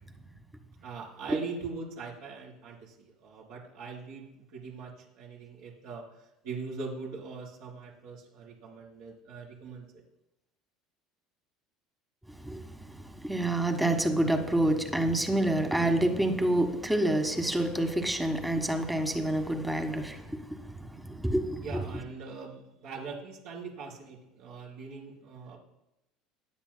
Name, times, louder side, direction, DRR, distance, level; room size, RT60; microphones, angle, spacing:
voice 1, 0.8-6.1 6.4-9.9 21.6-25.6, right 4 dB, 65° right, 4.0 m, -41 dB
voice 2, 12.3-21.8, right 1 dB, 5° right, 1.5 m, -28 dB
17.0 x 9.8 x 2.3 m
hypercardioid pair, 80°, 0 cm